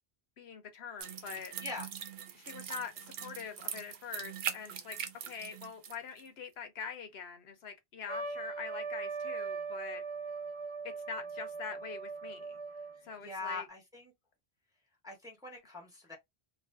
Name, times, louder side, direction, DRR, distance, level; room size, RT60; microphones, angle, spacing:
voice 1, 0.4-1.5 2.3-5.0 5.2-10.0 11.1-12.6 13.1-13.7, left 6 dB, 80° left, 1.0 m, -44 dB
sound 1, 1.0-5.9 6.2-6.3, right 8 dB, 75° right, 0.8 m, -42 dB
Trumpet, 8.1-13.1, right 4 dB, 40° right, 0.5 m, -40 dB
voice 2, 12.9-14.1 15.0-16.2, left 3 dB, 5° right, 0.7 m, -42 dB
2.5 x 2.0 x 3.2 m
omnidirectional pair, 1.0 m